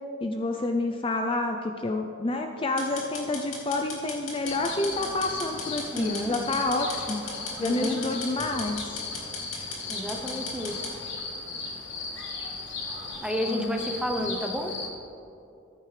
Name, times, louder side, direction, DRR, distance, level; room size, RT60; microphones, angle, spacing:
voice 1, 0.2-7.2 7.6-9.0 13.5-13.8 14.2-14.4, left 2 dB, 25° left, 4 dB, 0.4 m, -29 dB
sound 1, 2.8-10.9, left 4 dB, 90° left, 2.5 m, -38 dB
sound 2, 4.5-14.9, left 3 dB, 60° left, 1.5 m, -37 dB
voice 2, 5.9-6.4 7.6-8.0 9.9-10.9 13.2-14.8, equal, 5° right, 3 dB, 0.7 m, -31 dB
14.0 x 10.0 x 3.3 m, 2.7 s
head